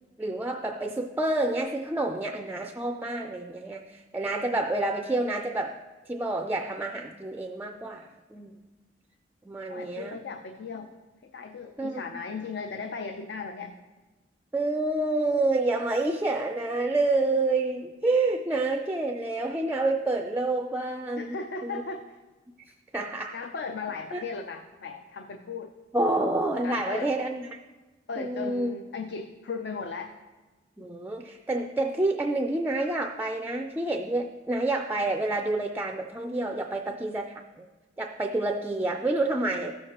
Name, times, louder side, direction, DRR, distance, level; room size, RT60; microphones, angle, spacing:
voice 1, 0.2-8.6 9.5-10.2 11.8-12.0 14.5-21.4 21.6-21.8 22.6-23.4 24.1-24.2 25.9-27.6 28.2-28.7 30.8-37.6 38.0-39.7, right 2 dB, 10° right, 4 dB, 0.3 m, -28 dB
voice 2, 9.7-10.9 11.2-13.7 21.2-22.0 23.3-25.7 26.6-27.1 28.1-30.1, left 4 dB, 65° left, 6 dB, 0.5 m, -36 dB
15.0 x 6.4 x 2.9 m, 1.2 s
head